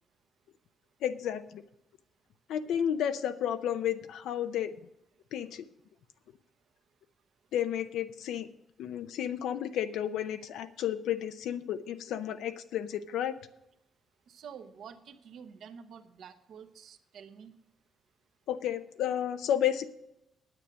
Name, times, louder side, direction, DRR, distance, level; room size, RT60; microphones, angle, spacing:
voice 1, 1.0-1.6 2.5-4.7 5.3-5.6 7.5-8.5 8.8-13.3 18.5-19.9, left 10 dB, 85° left, 9 dB, 0.6 m, -32 dB
voice 2, 14.3-17.5, right 7 dB, 55° right, 8 dB, 0.9 m, -49 dB
9.8 x 8.8 x 6.3 m, 0.84 s
cardioid pair, 175°, 0 cm